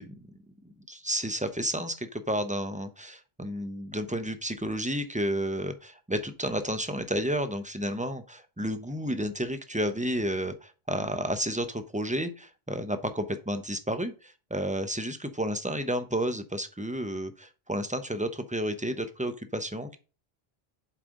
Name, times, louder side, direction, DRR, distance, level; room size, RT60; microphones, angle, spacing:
voice 1, 0.0-20.0, equal, 10° right, 9 dB, 0.6 m, -31 dB
7.5 x 4.8 x 3.7 m, 0.33 s
omnidirectional pair, 1.1 m